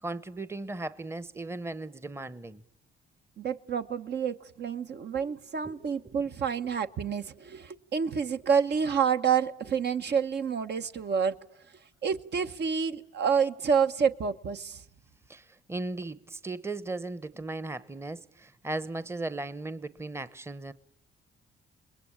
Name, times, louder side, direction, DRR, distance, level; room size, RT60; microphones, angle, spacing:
voice 1, 0.0-2.6 5.6-5.8 6.0-6.1 15.3-20.7, right 2 dB, 15° right, 1.0 m, -37 dB
voice 2, 3.4-11.3 12.0-14.8, right 6 dB, 55° right, 1.2 m, -28 dB
29.0 x 21.5 x 8.7 m
cardioid pair, 90°, 20 cm